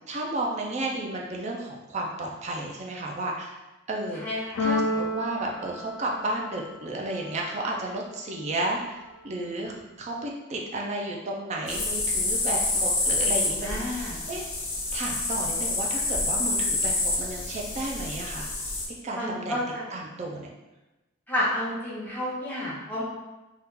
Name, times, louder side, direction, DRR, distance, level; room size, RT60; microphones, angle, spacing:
voice 1, 0.1-3.5 3.9-4.2 4.6-9.0 9.2-14.5 14.9-18.5 19.0-19.6 19.9-20.5, right 2 dB, 30° right, -1 dB, 0.4 m, -32 dB
voice 2, 4.1-4.7 13.6-14.3 19.1-19.8 21.3-23.0, left 1 dB, 10° left, -8 dB, 0.8 m, -30 dB
Keyboard (musical), 4.6-6.7, left 2 dB, 60° left, 0.4 m, -30 dB
sound 1, 11.7-18.8, left 2 dB, 85° left, 0.8 m, -28 dB
2.8 x 2.4 x 3.5 m, 1.1 s
head